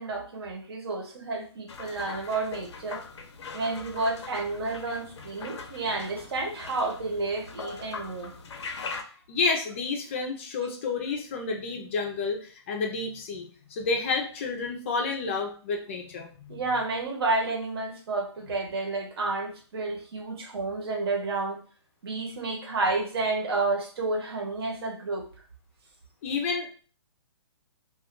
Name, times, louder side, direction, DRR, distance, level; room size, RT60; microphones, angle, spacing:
voice 1, 0.0-3.0 3.5-8.3 16.5-21.6 22.0-25.2, right 3 dB, 60° right, 1 dB, 0.9 m, -30 dB
sound 1, 1.7-9.0, left 4 dB, 70° left, 0.6 m, -41 dB
voice 2, 9.3-16.6 26.2-26.7, left 4 dB, 25° left, 2 dB, 0.5 m, -30 dB
2.3 x 2.3 x 3.6 m, 0.40 s
hypercardioid pair, 170°, 15 cm